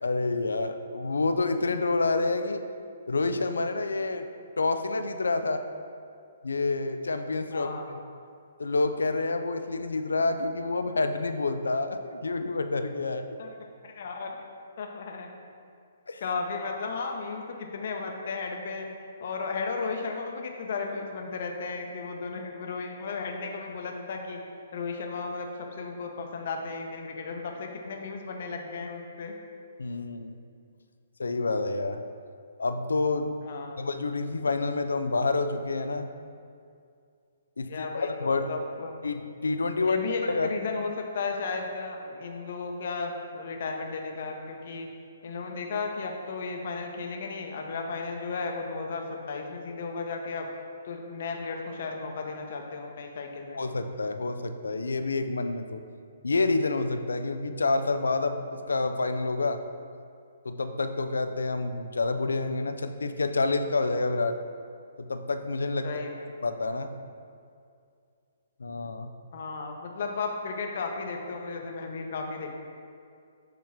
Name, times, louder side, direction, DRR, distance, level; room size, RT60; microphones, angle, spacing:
voice 1, 0.0-2.6 3.1-4.3 4.6-5.6 6.4-8.0 8.6-13.2 16.1-16.2 29.8-30.4 31.2-32.0 32.6-33.3 33.8-36.1 37.6-38.5 39.0-40.0 40.2-40.5 53.5-55.8 56.2-59.6 60.4-64.4 65.0-66.0 66.4-67.0 68.6-69.1, left 3 dB, 80° left, 8 dB, 0.4 m, -28 dB
voice 2, 7.5-7.9 13.4-13.5 13.8-14.4 14.8-15.3 16.2-18.9 19.2-24.4 24.7-29.4 33.4-33.8 37.7-39.0 39.8-44.9 45.2-50.5 50.9-53.6 65.8-66.3 69.3-72.6, left 4 dB, 55° left, 2 dB, 0.8 m, -34 dB
7.3 x 3.0 x 5.9 m, 2.3 s
figure-of-eight pair, 130°, 0 cm